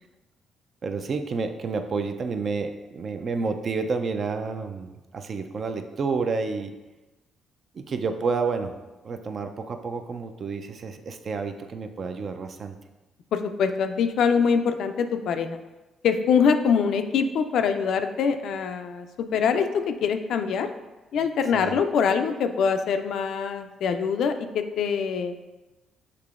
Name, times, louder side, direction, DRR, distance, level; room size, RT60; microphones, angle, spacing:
voice 1, 0.8-6.7 7.7-8.7 9.0-12.8 21.5-21.8, right 4 dB, 50° right, 6 dB, 0.4 m, -30 dB
voice 2, 13.3-15.6 16.0-20.7 21.1-25.3, left 6 dB, 75° left, 8 dB, 0.3 m, -24 dB
6.6 x 2.8 x 2.4 m, 1.1 s
cardioid pair, 90°, 0 cm